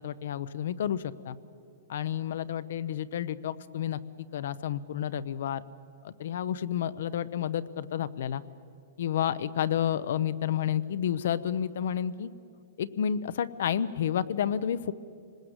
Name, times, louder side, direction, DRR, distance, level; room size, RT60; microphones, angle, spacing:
voice 1, 0.0-1.4 1.9-5.6 6.0-8.4 9.0-12.3 12.8-14.9, left 9 dB, 70° left, 15 dB, 0.8 m, -30 dB
25.5 x 20.0 x 8.1 m, 2.4 s
hypercardioid pair, 150°, 0 cm